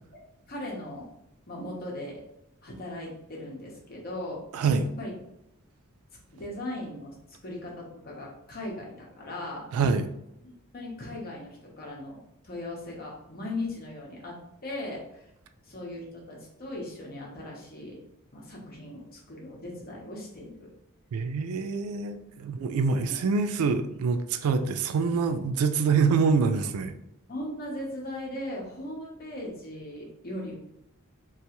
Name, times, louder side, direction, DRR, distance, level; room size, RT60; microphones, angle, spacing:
voice 1, 0.5-1.1 1.5-2.2 2.6-4.4 5.0-5.1 6.3-7.1 7.4-9.6 10.7-12.2 12.4-15.2 15.6-18.0 18.3-20.7 23.0-23.2 26.5-26.7 27.3-30.6, left 1 dB, 45° left, -2 dB, 0.8 m, -38 dB
voice 2, 4.5-4.9 9.7-10.1 21.1-26.9, right 5 dB, 90° right, 10 dB, 0.3 m, -25 dB
3.0 x 2.3 x 2.9 m, 0.83 s
head